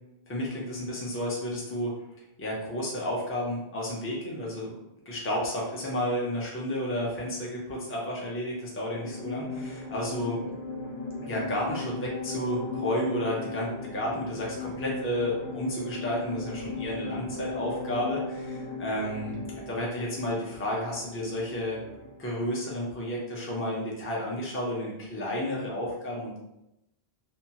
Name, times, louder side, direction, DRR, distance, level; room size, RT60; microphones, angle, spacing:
voice 1, 0.3-1.9 2.4-4.7 5.1-10.4 11.2-19.4 19.7-21.8 22.2-26.4, left 1 dB, 15° left, -3 dB, 0.5 m, -32 dB
sound 1, 8.9-22.2, left 3 dB, 70° left, 0.8 m, -37 dB
2.7 x 2.2 x 2.8 m, 0.87 s
omnidirectional pair, 1.1 m